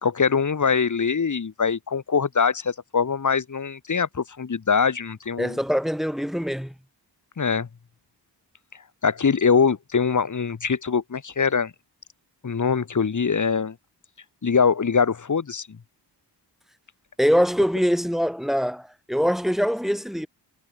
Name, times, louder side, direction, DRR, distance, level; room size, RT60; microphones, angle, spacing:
voice 1, 0.0-5.6 7.4-7.7 9.0-11.7 12.4-13.8 14.4-15.8, left 5 dB, 45° left, 1.9 m, -23 dB
voice 2, 5.4-6.7 17.2-20.3, equal, ahead, 1.9 m, -23 dB
cardioid pair, 70°, 43 cm